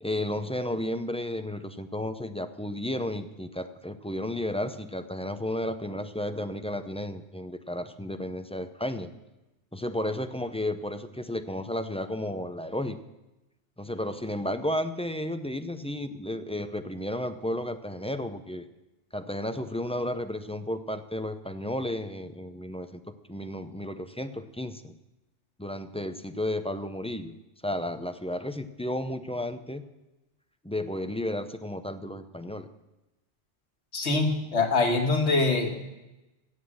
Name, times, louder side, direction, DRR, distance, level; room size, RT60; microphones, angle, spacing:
voice 1, 0.0-9.1 9.7-13.0 13.8-18.7 19.1-25.0 25.6-27.4 27.6-29.8 30.6-32.7, left 1 dB, 10° left, 9 dB, 0.4 m, -33 dB
voice 2, 33.9-35.7, left 3 dB, 90° left, 3 dB, 1.8 m, -24 dB
14.5 x 7.9 x 7.4 m, 1.0 s
omnidirectional pair, 1.1 m